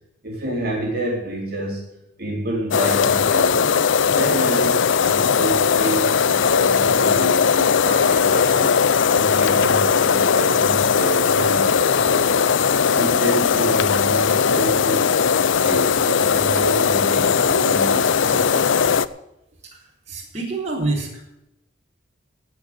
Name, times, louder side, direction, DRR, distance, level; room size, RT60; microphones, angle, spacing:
voice 1, 0.2-1.8 2.2-3.7 4.1-8.7 9.1-12.5 12.9-15.2 15.6-19.0, right 1 dB, 50° right, -2 dB, 3.8 m, -28 dB
sound 1, 2.7-19.1, left 6 dB, 85° left, 0.5 m, -18 dB
voice 2, 19.7-21.2, right 2 dB, 35° right, -3 dB, 4.0 m, -27 dB
17.5 x 6.1 x 8.7 m, 0.88 s
head